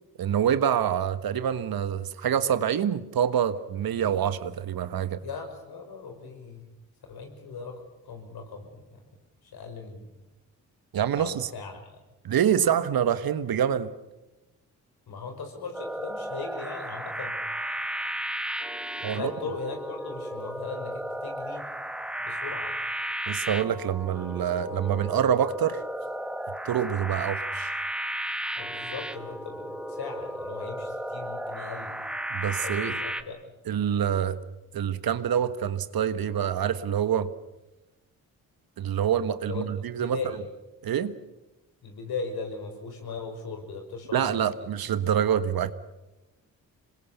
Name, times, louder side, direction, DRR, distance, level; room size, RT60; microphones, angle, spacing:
voice 1, 0.2-5.2 10.9-11.5 12.2-13.9 19.0-19.3 23.3-25.8 26.6-27.7 32.3-32.9 33.7-34.4 34.7-37.3 38.8-40.2 40.8-41.2 44.1-45.7, right 9 dB, 60° right, 12 dB, 1.5 m, -26 dB
voice 2, 5.2-6.7 7.1-7.7 8.0-9.0 9.4-10.1 11.2-12.0 15.1-17.3 19.1-21.6 22.2-22.7 28.6-32.0 32.6-33.4 39.4-40.4 41.8-44.7 45.0-45.1, left 4 dB, 65° left, 5 dB, 5.9 m, -38 dB
sound 1, 15.7-33.2, right 1 dB, ahead, 1.7 m, -34 dB
26.5 x 21.5 x 6.9 m, 1.0 s
supercardioid pair, 50°, 40 cm